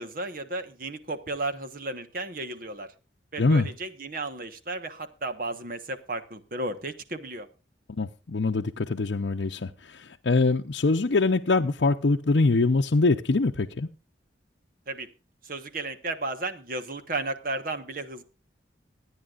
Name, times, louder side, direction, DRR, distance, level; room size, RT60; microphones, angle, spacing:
voice 1, 0.0-2.9 3.3-7.5 14.9-15.1 15.4-18.2, right 2 dB, 50° right, 1.3 m, -34 dB
voice 2, 8.0-13.9, left 3 dB, 70° left, 0.7 m, -24 dB
25.0 x 9.7 x 2.5 m
head